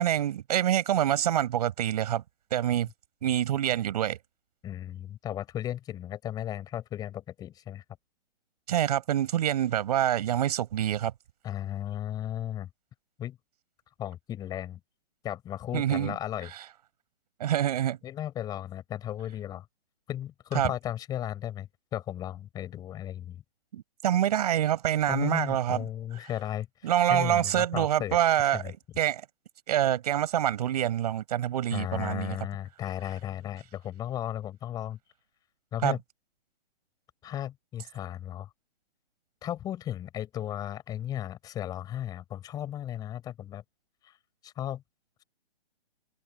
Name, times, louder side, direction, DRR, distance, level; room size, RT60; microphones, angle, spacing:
voice 1, 0.0-2.2 2.5-2.9 3.2-4.2 8.7-11.1 15.7-16.2 17.4-18.0 20.5-20.7 23.7-25.8 26.8-29.2 29.7-32.4 35.8-36.0, right 11 dB, 40° right, 5.7 m, -26 dB
voice 2, 4.6-7.8 11.4-12.7 13.2-13.4 14.0-14.8 15.2-16.5 18.0-19.7 20.1-23.4 25.1-28.2 28.5-28.7 31.7-35.0 35.7-36.0 37.2-38.5 39.4-43.6 44.0-44.1 44.4-44.8, left 11 dB, 10° left, 6.9 m, -35 dB
open air
hypercardioid pair, 170°, 31 cm